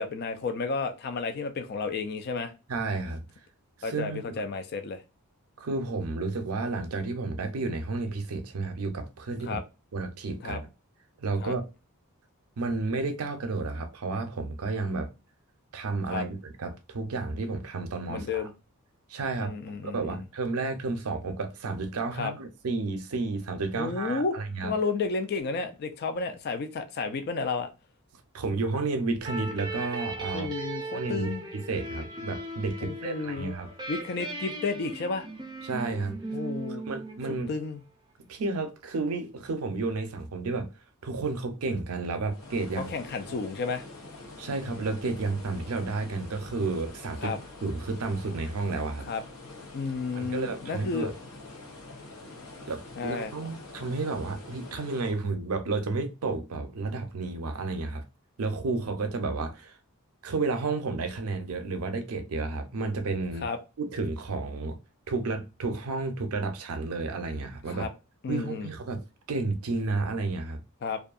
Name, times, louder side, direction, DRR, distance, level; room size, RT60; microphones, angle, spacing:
voice 1, 0.0-2.5 3.8-5.0 9.5-9.6 10.4-10.6 11.4-11.5 16.1-16.2 18.1-18.5 19.4-20.2 22.2-22.3 23.7-24.3 24.6-27.7 30.3-31.4 32.8-33.5 33.9-35.3 36.3-36.8 37.5-37.8 42.9-43.9 47.2-47.4 49.1-49.2 49.7-51.1 53.0-53.3 63.4-63.6 67.7-67.9 68.2-68.7 70.8-71.0, left 4 dB, 45° left, 0.4 m, -32 dB
voice 2, 2.7-3.2 3.8-4.3 5.6-9.6 9.9-10.7 11.2-11.6 12.6-15.1 15.7-18.5 19.1-19.5 19.8-24.7 28.3-30.7 30.9-33.7 35.6-36.2 36.9-37.5 38.3-40.7 41.0-42.9 44.4-47.4 47.6-49.1 50.1-51.1 52.7-58.0 58.4-59.8 60.2-63.5 63.8-64.8 65.1-67.9 68.3-69.0 69.3-70.6, right 3 dB, 80° right, 0.5 m, -31 dB
sound 1, 29.2-37.7, right 2 dB, 20° right, 0.4 m, -38 dB
sound 2, 42.3-55.2, left 2 dB, 75° left, 0.8 m, -46 dB
2.6 x 2.3 x 2.3 m
head